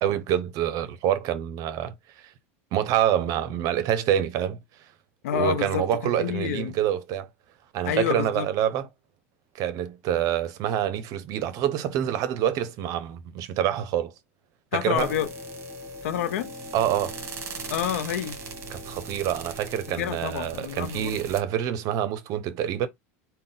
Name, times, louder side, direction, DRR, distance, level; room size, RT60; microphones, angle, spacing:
voice 1, 0.0-1.9 2.7-4.6 5.3-7.3 7.7-8.9 9.5-14.1 14.7-15.1 16.7-17.2 18.7-22.9, right 10 dB, 55° right, 0.7 m, -26 dB
voice 2, 5.2-6.8 7.8-8.5 14.7-15.3 16.0-16.5 17.7-18.4 20.0-21.2, left 10 dB, 80° left, 0.6 m, -28 dB
sound 1, 15.0-21.4, right 2 dB, 35° right, 1.1 m, -39 dB
3.8 x 2.2 x 3.7 m
supercardioid pair, 105°, 8 cm